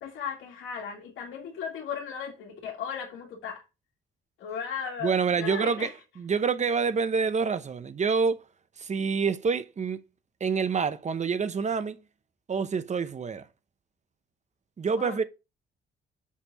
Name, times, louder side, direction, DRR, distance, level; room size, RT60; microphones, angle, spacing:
voice 1, 0.0-3.6 4.4-5.9 15.0-15.2, left 7 dB, 85° left, 2.1 m, -36 dB
voice 2, 5.0-5.9 6.2-8.4 8.8-10.0 10.4-12.0 12.5-13.4 14.8-15.2, right 5 dB, 35° right, 0.9 m, -27 dB
7.3 x 4.3 x 5.3 m
cardioid pair, 90°, 20 cm